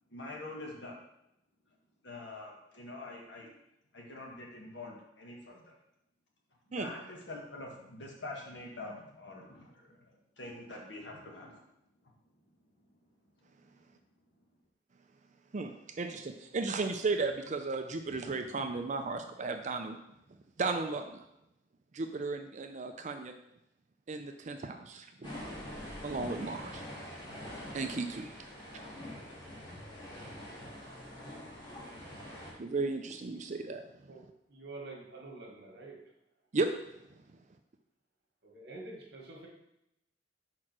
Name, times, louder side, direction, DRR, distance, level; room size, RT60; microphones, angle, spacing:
voice 1, 0.1-0.9 2.0-3.5 3.9-5.7 6.7-10.1 10.4-11.6 12.0-12.1, left 2 dB, 70° left, -1 dB, 1.6 m, -45 dB
voice 2, 16.0-20.0 20.6-21.2 21.9-23.3 24.1-25.3 26.0-26.8 27.7-28.3 32.6-33.8 36.5-36.7, right 3 dB, 40° right, 6 dB, 0.5 m, -34 dB
sound 1, 25.2-32.5, left 1 dB, 25° left, 2.7 m, -45 dB
voice 3, 34.1-36.0 38.4-39.5, right 2 dB, 65° right, -1 dB, 1.8 m, -47 dB
4.9 x 4.5 x 6.0 m, 0.83 s
head